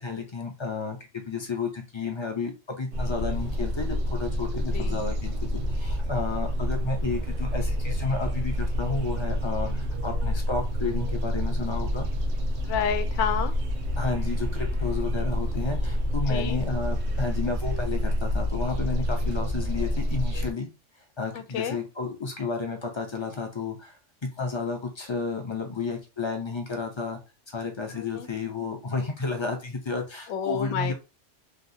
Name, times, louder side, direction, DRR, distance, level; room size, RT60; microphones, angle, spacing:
voice 1, 0.0-12.1 14.0-20.7 21.2-24.0 24.2-27.2 27.5-30.9, left 4 dB, 35° left, 0.5 m, -32 dB
sound 1, 2.9-20.5, equal, 65° right, 0.9 m, -28 dB
voice 2, 12.6-13.5 16.3-16.6 21.3-21.8 28.0-28.3 30.3-30.9, left 8 dB, 75° left, 0.9 m, -30 dB
3.4 x 2.4 x 2.7 m
omnidirectional pair, 1.3 m